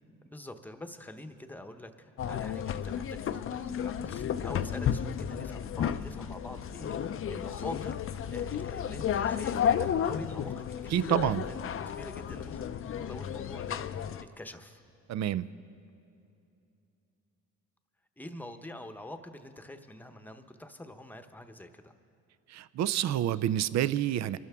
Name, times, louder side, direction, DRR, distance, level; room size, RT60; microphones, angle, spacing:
voice 1, 0.2-10.7 10.9-12.7 12.9-14.8 18.2-21.9, left 1 dB, 5° left, 7 dB, 0.9 m, -46 dB
sound 1, 2.2-14.2, left 8 dB, 45° left, 0.5 m, -32 dB
voice 2, 10.9-11.4 15.1-15.5 22.5-24.4, right 11 dB, 60° right, 17 dB, 0.5 m, -28 dB
24.0 x 12.5 x 3.5 m, 2.7 s
cardioid pair, 90°, 30 cm